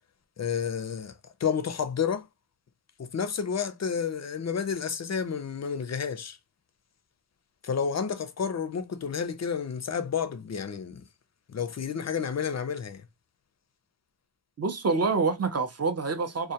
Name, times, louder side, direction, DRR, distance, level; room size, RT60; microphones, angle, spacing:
voice 1, 0.4-2.3 3.0-6.4 7.6-11.1 11.5-13.1, left 6 dB, 35° left, 0.4 m, -30 dB
voice 2, 14.6-16.5, right 4 dB, 35° right, 0.4 m, -27 dB
2.2 x 2.1 x 2.7 m
wide cardioid pair, 70°, 50 cm